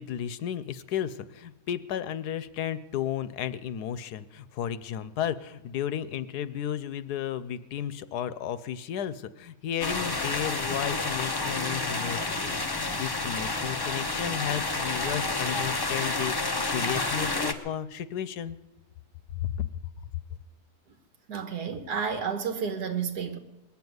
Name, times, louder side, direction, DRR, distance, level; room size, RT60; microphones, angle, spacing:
voice 1, 0.0-18.6 19.4-19.7, left 10 dB, 85° left, 1.3 m, -33 dB
sound 1, 9.8-17.5, left 3 dB, 20° left, 0.6 m, -29 dB
voice 2, 21.3-23.4, right 6 dB, 80° right, 2.0 m, -31 dB
20.5 x 7.2 x 9.4 m
omnidirectional pair, 1.7 m